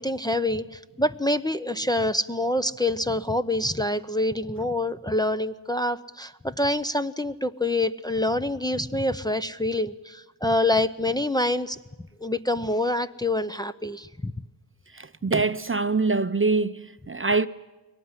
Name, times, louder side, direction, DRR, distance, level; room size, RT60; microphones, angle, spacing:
voice 1, 0.0-11.8 12.2-14.3, left 1 dB, 10° left, 0.7 m, -26 dB
voice 2, 14.9-17.5, right 3 dB, 30° right, 0.7 m, -24 dB
22.5 x 18.5 x 9.7 m
wide cardioid pair, 80°, 42 cm